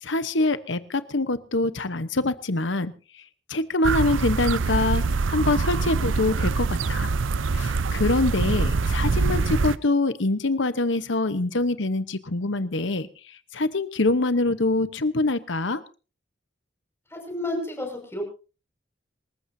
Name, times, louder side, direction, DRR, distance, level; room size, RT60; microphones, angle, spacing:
voice 1, 0.0-2.9 3.5-7.1 7.5-15.8, left 2 dB, 70° left, 13 dB, 1.1 m, -25 dB
sound 1, 3.8-9.8, right 4 dB, 85° right, 0.6 m, -24 dB
voice 2, 17.1-18.2, left 1 dB, 15° left, 2 dB, 5.9 m, -31 dB
27.0 x 14.5 x 2.8 m, 0.34 s
head